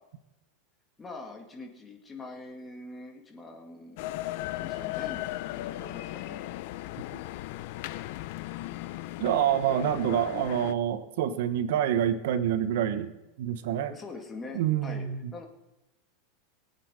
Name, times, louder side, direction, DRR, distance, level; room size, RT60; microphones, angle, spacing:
voice 1, 1.0-4.2 4.6-5.2 5.6-6.4 9.8-10.2 13.9-15.4, left 3 dB, 15° left, 3 dB, 1.8 m, -44 dB
sound 1, 4.0-10.7, left 16 dB, 60° left, 0.6 m, -36 dB
voice 2, 9.2-13.9 14.5-15.3, right 10 dB, 70° right, 11 dB, 1.0 m, -27 dB
23.0 x 8.5 x 4.8 m, 0.98 s
supercardioid pair, 155°, 0 cm